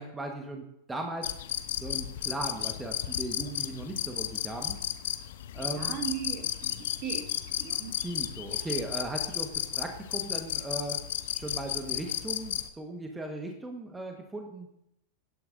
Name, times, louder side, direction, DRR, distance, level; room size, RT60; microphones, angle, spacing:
voice 1, 0.0-1.3 1.8-4.8 5.5-6.0 8.0-11.1 11.3-14.7, right 2 dB, 10° right, 3 dB, 1.4 m, -38 dB
sound 1, 1.2-12.7, left 12 dB, 55° left, 0.8 m, -33 dB
voice 2, 5.6-8.0, right 8 dB, 40° right, 4 dB, 2.0 m, -38 dB
17.0 x 11.5 x 2.7 m, 0.81 s
figure-of-eight pair, 90°, 0 cm